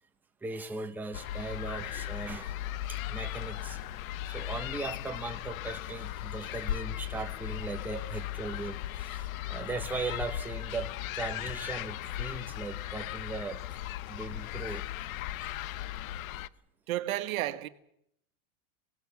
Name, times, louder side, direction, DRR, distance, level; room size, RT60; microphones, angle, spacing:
voice 1, 0.4-2.6 2.9-3.8 4.3-13.6 14.1-14.9 15.3-15.6, right 3 dB, 5° right, 0.9 m, -38 dB
sound 1, 1.1-16.5, left 13 dB, 80° left, 0.9 m, -37 dB
voice 2, 16.9-17.7, right 14 dB, 90° right, 1.8 m, -32 dB
26.0 x 17.0 x 7.3 m
supercardioid pair, 165°, 40 cm